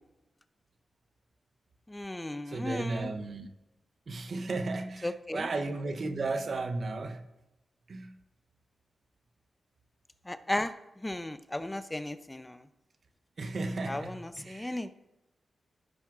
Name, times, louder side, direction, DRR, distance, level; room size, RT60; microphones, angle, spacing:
voice 1, 1.9-3.1 5.0-5.5 10.3-10.7 11.0-12.6 13.9-14.9, left 1 dB, 15° left, 0.5 m, -35 dB
voice 2, 2.5-3.5 4.1-7.2 7.9-8.2 13.4-14.8, right 3 dB, 60° right, 0.8 m, -34 dB
16.0 x 5.8 x 2.4 m
cardioid pair, 60°, 0 cm